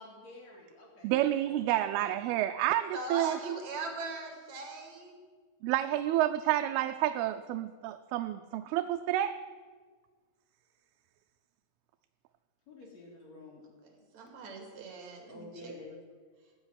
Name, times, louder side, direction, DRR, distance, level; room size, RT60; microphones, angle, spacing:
voice 1, 0.0-1.1 1.5-2.1 12.7-13.6 15.3-15.9, left 2 dB, 45° left, -3 dB, 4.8 m, -50 dB
voice 2, 1.0-3.6 5.6-9.4, right 13 dB, 85° right, 7 dB, 2.5 m, -29 dB
voice 3, 2.9-5.1 13.8-15.7, right 3 dB, 50° right, 3 dB, 3.3 m, -40 dB
15.0 x 8.1 x 9.8 m, 1.5 s
omnidirectional pair, 4.4 m